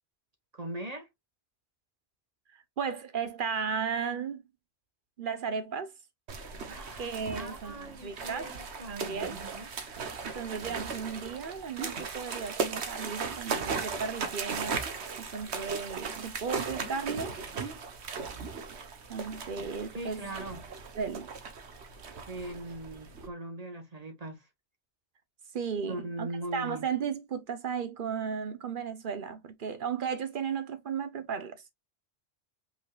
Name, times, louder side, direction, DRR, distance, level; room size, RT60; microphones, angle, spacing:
voice 1, 0.5-1.1 6.7-9.7 19.9-20.6 22.3-24.5 25.9-26.9, right 1 dB, 35° right, 1.3 m, -40 dB
voice 2, 2.8-4.4 5.2-5.9 6.6-8.5 8.9-9.4 10.2-14.8 15.2-17.4 19.1-20.3 20.9-21.3 25.5-31.6, right 6 dB, 55° right, 0.9 m, -35 dB
sound 1, 6.3-23.3, right 5 dB, 80° right, 1.3 m, -37 dB
5.6 x 3.8 x 2.3 m
omnidirectional pair, 1.1 m